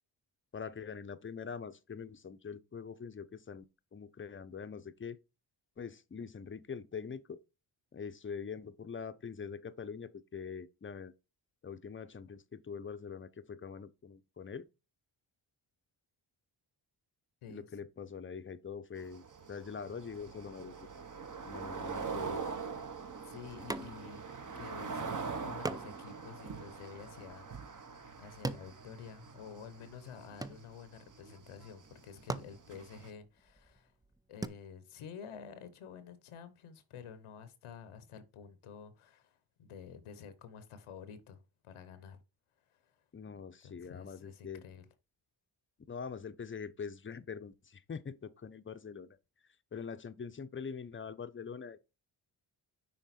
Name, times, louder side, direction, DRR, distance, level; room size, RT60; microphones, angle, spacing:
voice 1, 0.5-5.2 5.8-7.4 7.9-11.1 11.6-14.7 17.5-20.9 21.4-22.5 43.1-44.6 45.9-49.2 49.7-51.8, left 6 dB, 25° left, 0.6 m, -44 dB
sound 1, 19.0-33.1, right 5 dB, 40° right, 1.0 m, -44 dB
voice 2, 23.2-24.2 24.5-27.7 28.2-33.9 34.3-42.2 42.7-43.0 43.6-44.8, left 7 dB, 90° left, 0.9 m, -50 dB
sound 2, 23.7-24.3 24.6-24.7 25.6-29.6 29.9-31.1 31.8-31.9 32.2-34.5, right 3 dB, 10° right, 0.3 m, -43 dB
6.2 x 3.8 x 4.2 m
cardioid pair, 55°, 49 cm